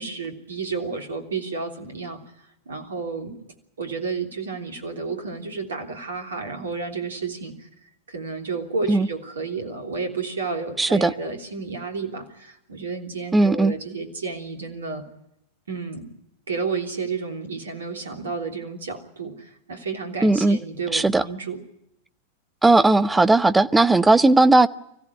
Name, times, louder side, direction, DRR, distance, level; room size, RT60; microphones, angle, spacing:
voice 1, 0.0-2.2 2.6-3.4 3.8-7.7 8.1-15.1 15.7-16.1 16.5-21.6, right 4 dB, 70° right, 3.2 m, -31 dB
voice 2, 10.8-11.1 13.3-13.7 20.2-20.6 20.9-21.2 22.6-24.7, right 2 dB, 10° right, 0.9 m, -17 dB
25.0 x 15.5 x 9.8 m
figure-of-eight pair, 90°, 0 cm